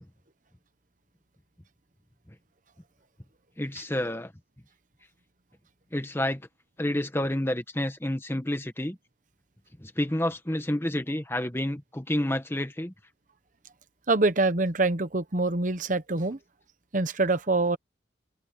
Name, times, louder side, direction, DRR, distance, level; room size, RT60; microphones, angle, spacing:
voice 1, 3.6-4.3 5.9-6.4 6.8-9.0 9.8-12.9, left 1 dB, 15° left, 1.2 m, -29 dB
voice 2, 14.1-16.4 16.9-17.8, right 3 dB, 45° right, 1.1 m, -25 dB
head